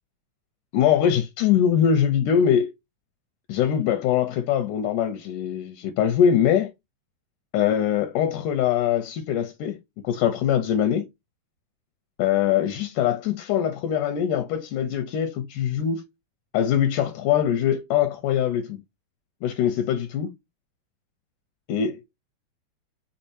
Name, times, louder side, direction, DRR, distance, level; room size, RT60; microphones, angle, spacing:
voice 1, 0.7-2.7 3.5-6.7 7.5-9.8 10.0-11.1 12.2-16.0 16.5-18.8 19.4-20.3 21.7-22.0, left 9 dB, 80° left, 1.9 m, -22 dB
5.4 x 3.6 x 2.7 m
omnidirectional pair, 4.0 m